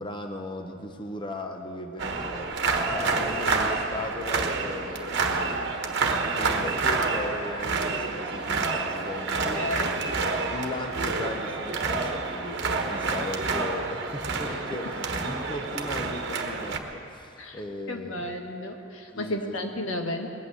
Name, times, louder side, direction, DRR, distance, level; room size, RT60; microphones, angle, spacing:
voice 1, 0.0-5.5 5.9-10.0 10.5-12.6 12.9-18.3 19.1-19.6, left 1 dB, 25° left, 4 dB, 0.8 m, -37 dB
sound 1, 2.0-16.8, right 4 dB, 55° right, 1.2 m, -28 dB
voice 2, 9.6-9.9 17.4-17.6 17.9-20.3, left 1 dB, 80° left, 3 dB, 1.6 m, -33 dB
20.5 x 8.7 x 8.0 m, 2.6 s
head